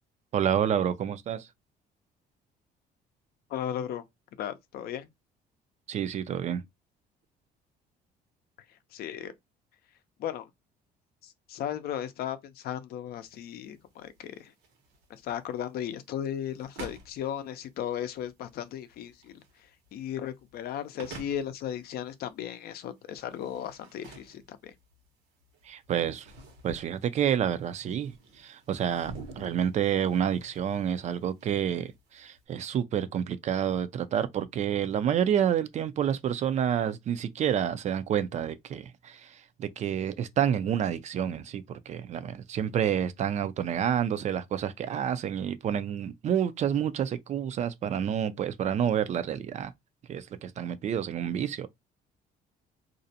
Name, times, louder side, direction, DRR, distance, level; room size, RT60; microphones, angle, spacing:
voice 1, 0.3-1.5 5.9-6.6 25.7-26.3 26.6-49.7 50.1-51.7, right 9 dB, 45° right, 0.4 m, -29 dB
voice 2, 3.5-4.0 4.4-5.1 8.9-9.3 10.2-10.5 11.2-14.5 15.1-19.4 19.9-24.7, left 10 dB, 65° left, 0.5 m, -36 dB
sound 1, 13.2-32.4, right 3 dB, 75° right, 1.0 m, -50 dB
2.5 x 2.1 x 2.7 m
cardioid pair, 110°, 17 cm